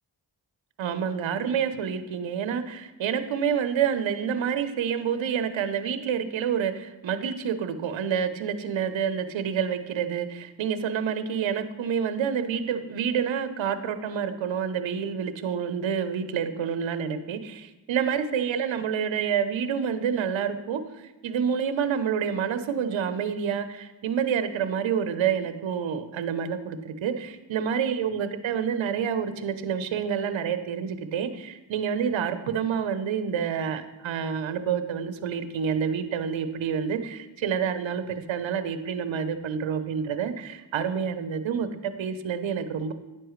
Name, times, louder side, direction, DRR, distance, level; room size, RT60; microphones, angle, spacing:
voice 1, 0.8-42.9, right 7 dB, 65° right, 10 dB, 0.9 m, -28 dB
10.0 x 7.7 x 3.2 m, 1.1 s
supercardioid pair, 45°, 49 cm